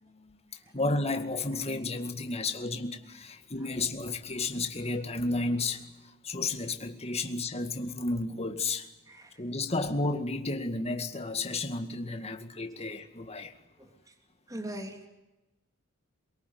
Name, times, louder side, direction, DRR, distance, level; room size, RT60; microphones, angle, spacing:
voice 1, 0.0-0.4 0.7-8.9 9.4-13.5, left 2 dB, 30° left, 2.1 m, -32 dB
voice 2, 9.1-9.6 12.2-12.3 13.8-14.1 14.5-15.0, right 1 dB, 15° right, 3.2 m, -42 dB
23.5 x 23.0 x 9.6 m
head